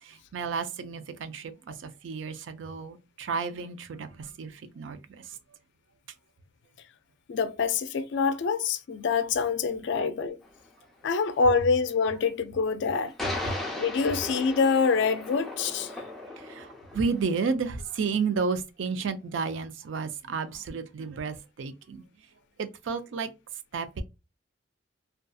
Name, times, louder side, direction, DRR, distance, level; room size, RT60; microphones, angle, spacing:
voice 1, 0.0-5.4 10.0-10.1 13.5-13.7 16.4-22.0 22.6-23.3 23.7-24.0, right 5 dB, 75° right, 0.4 m, -32 dB
voice 2, 7.3-10.4 11.0-15.9, left 5 dB, 65° left, 0.4 m, -26 dB
sound 1, 10.5-10.6 13.2-17.5, left 2 dB, ahead, 0.5 m, -37 dB
2.6 x 2.3 x 2.3 m
head